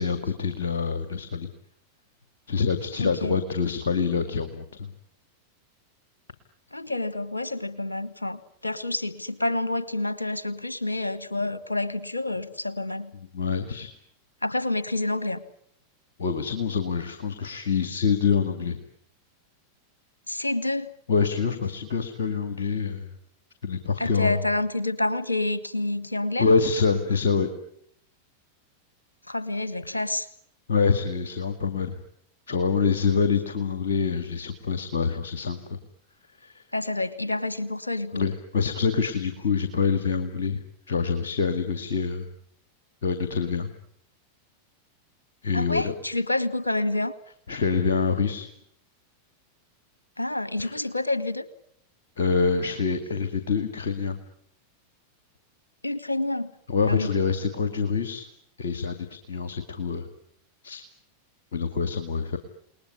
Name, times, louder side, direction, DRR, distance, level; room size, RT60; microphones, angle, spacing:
voice 1, 0.0-1.5 2.5-4.9 13.1-13.9 16.2-18.8 21.1-23.1 23.6-24.4 26.4-27.5 29.9-30.0 30.7-32.0 32.5-35.8 36.4-36.6 38.1-40.6 40.9-42.3 43.0-43.7 45.4-45.9 47.5-48.5 50.6-50.8 52.2-54.2 56.7-58.3 58.6-60.1 60.6-60.8 61.5-62.4, left 5 dB, 65° left, 8 dB, 2.2 m, -26 dB
voice 2, 3.0-3.4 6.7-13.1 14.4-15.4 18.4-18.5 20.3-20.9 24.0-26.6 29.3-30.3 36.7-38.2 45.5-47.1 50.2-51.5 55.8-56.5 56.9-57.1, left 2 dB, 80° left, 16 dB, 1.5 m, -28 dB
29.0 x 20.0 x 9.6 m, 0.73 s
figure-of-eight pair, 90°, 0 cm